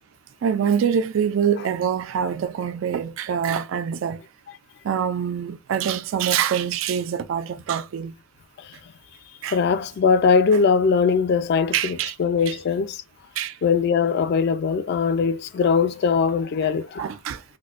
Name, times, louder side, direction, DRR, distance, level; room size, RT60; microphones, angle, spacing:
voice 1, 0.4-4.2 4.8-8.1 9.4-9.6 11.7-12.2 12.5-12.6 13.4-13.6 17.0-17.4, right 8 dB, 80° right, 0.3 m, -25 dB
voice 2, 9.5-13.0 13.6-17.1, left 5 dB, 55° left, 0.3 m, -21 dB
4.2 x 2.2 x 2.4 m
head